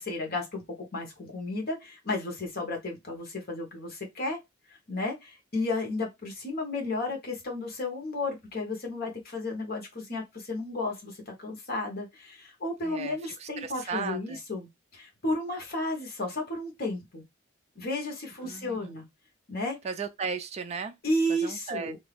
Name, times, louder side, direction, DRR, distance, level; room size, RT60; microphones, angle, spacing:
voice 1, 0.0-4.4 4.9-17.2 17.8-19.0 19.5-19.8 21.0-22.0, left 2 dB, 50° left, 1.1 m, -33 dB
voice 2, 12.8-14.4 18.4-19.0 19.8-21.0 21.3-21.9, right 5 dB, 35° right, 0.3 m, -36 dB
2.6 x 2.4 x 3.3 m
head